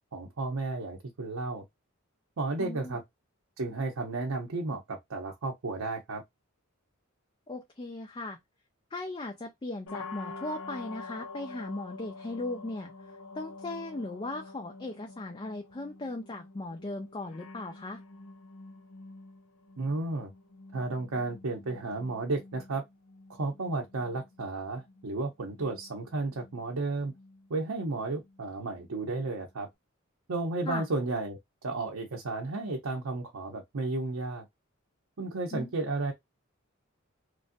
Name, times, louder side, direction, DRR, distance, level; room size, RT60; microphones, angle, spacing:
voice 1, 0.1-1.6 2.4-3.0 3.6-6.2 19.8-20.3 20.7-22.8 23.3-27.1 27.5-29.7 30.3-34.5 35.2-36.1, right 3 dB, 75° right, 0.7 m, -33 dB
voice 2, 2.6-3.0 7.5-8.4 8.9-18.0 30.7-30.9 35.5-35.7, left 2 dB, 25° left, 0.5 m, -38 dB
sound 1, 9.9-29.7, left 3 dB, 90° left, 0.7 m, -48 dB
3.2 x 2.5 x 2.5 m
head